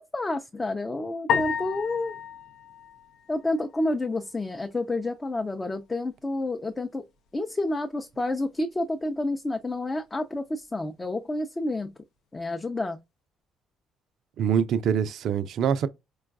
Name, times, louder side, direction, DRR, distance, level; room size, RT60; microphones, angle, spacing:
voice 1, 0.0-2.2 3.3-7.0 7.3-11.9 12.3-13.0, left 2 dB, 25° left, 0.6 m, -29 dB
sound 1, 1.3-3.8, left 7 dB, 70° left, 0.5 m, -31 dB
voice 2, 14.4-15.9, right 8 dB, 65° right, 0.4 m, -24 dB
4.4 x 2.3 x 2.4 m
hypercardioid pair, 50°, 0 cm